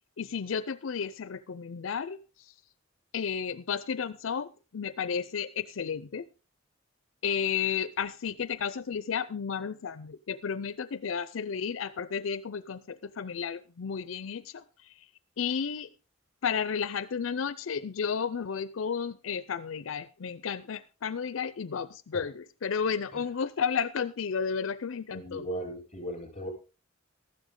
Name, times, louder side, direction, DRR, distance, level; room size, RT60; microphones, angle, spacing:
voice 1, 0.2-2.5 3.1-6.3 7.2-15.1 15.4-15.9 16.4-25.4, left 6 dB, 80° left, 0.5 m, -32 dB
voice 2, 25.1-26.5, right 1 dB, 35° left, 7.0 m, -37 dB
14.0 x 12.5 x 3.8 m
head